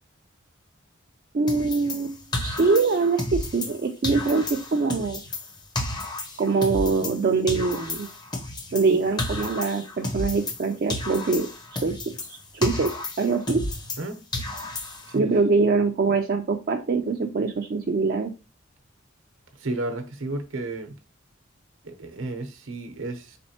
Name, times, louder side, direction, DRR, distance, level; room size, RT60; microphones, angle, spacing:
voice 1, 1.3-2.2 2.4-5.2 6.4-8.1 8.7-11.5 11.8-12.0 12.3-13.6 15.1-18.3, right 4 dB, 45° right, 0.4 m, -23 dB
sound 1, 1.5-3.8 4.0-7.2 7.5-10.6 10.9-14.1 14.3-15.2, left 2 dB, 20° left, 0.6 m, -32 dB
voice 2, 19.6-20.9 21.8-23.4, right 2 dB, 75° right, 0.8 m, -32 dB
4.2 x 3.5 x 2.8 m
head